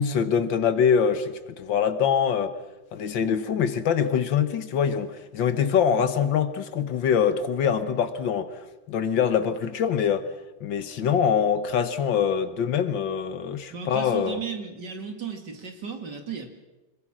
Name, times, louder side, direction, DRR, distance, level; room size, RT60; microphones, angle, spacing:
voice 1, 0.0-2.5 2.9-10.3 10.6-14.4, left 7 dB, 70° left, 1.8 m, -24 dB
voice 2, 13.7-16.5, right 6 dB, 60° right, 2.9 m, -35 dB
25.5 x 21.5 x 6.2 m
omnidirectional pair, 2.2 m